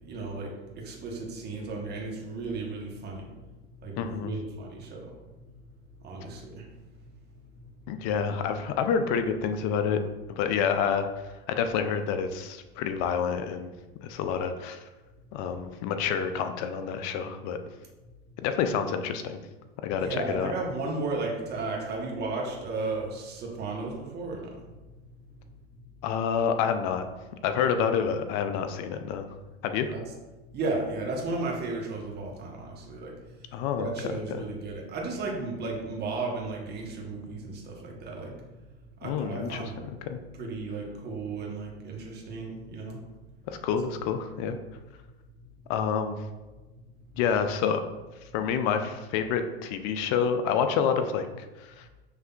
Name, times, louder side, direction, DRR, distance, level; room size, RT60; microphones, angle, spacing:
voice 1, 0.0-3.3 3.8-5.1 6.0-6.6 20.0-24.6 29.9-30.0 30.5-33.1 33.8-38.3 39.0-39.9 40.4-43.0, right 3 dB, 30° right, -1 dB, 1.0 m, -34 dB
voice 2, 4.0-4.3 7.9-10.0 10.3-13.7 14.0-14.8 15.3-17.6 18.4-19.4 19.8-20.5 26.0-27.0 27.4-29.3 29.6-29.9 33.5-33.9 39.0-39.6 40.1-40.2 43.5-44.6 45.7-46.2 47.2-47.8 48.3-51.9, left 7 dB, 50° left, 8 dB, 0.5 m, -28 dB
5.5 x 3.3 x 2.3 m, 1.2 s
hypercardioid pair, 95°, 31 cm